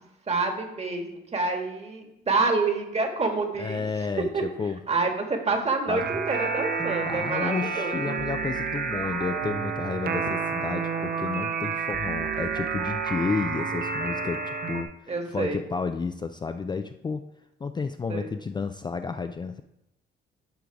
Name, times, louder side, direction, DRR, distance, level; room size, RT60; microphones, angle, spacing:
voice 1, 0.3-3.9 4.2-4.4 4.9-8.2 15.1-15.6 18.1-18.3, right 3 dB, 30° right, 4 dB, 1.6 m, -27 dB
voice 2, 3.6-4.8 5.9-6.1 7.0-17.2 17.6-19.6, left 5 dB, 20° left, 8 dB, 0.4 m, -31 dB
sound 1, 6.0-14.8, right 5 dB, 50° right, 0.8 m, -30 dB
11.5 x 3.9 x 4.8 m, 0.87 s
cardioid pair, 90°, 20 cm